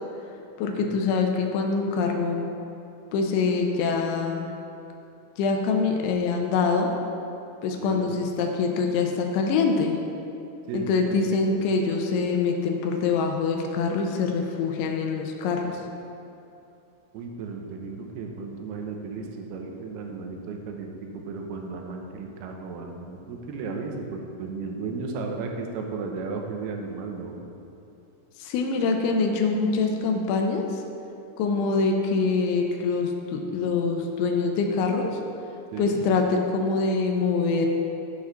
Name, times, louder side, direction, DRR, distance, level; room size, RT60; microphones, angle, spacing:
voice 1, 0.6-2.5 3.1-4.5 5.4-6.9 7.6-10.0 10.7-15.8 28.4-30.8 31.4-35.1 35.8-37.7, left 4 dB, 90° left, 2 dB, 3.1 m, -24 dB
voice 2, 7.8-8.1 10.7-11.2 11.9-12.0 17.1-27.4 35.7-36.0, right 4 dB, 75° right, 2 dB, 2.5 m, -35 dB
13.5 x 4.8 x 5.9 m, 2.7 s
omnidirectional pair, 5.3 m